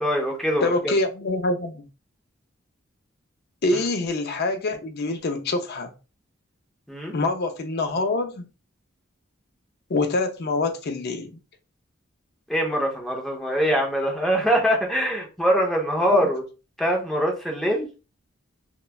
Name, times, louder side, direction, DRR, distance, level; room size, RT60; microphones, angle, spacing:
voice 1, 0.0-0.9 3.7-3.8 6.9-7.1 12.5-16.4 16.8-17.9, equal, ahead, 0.7 m, -23 dB
voice 2, 0.6-1.9 3.6-5.9 7.1-8.5 9.9-11.3 16.1-16.3, left 3 dB, 55° left, 0.5 m, -25 dB
3.1 x 2.2 x 2.2 m
head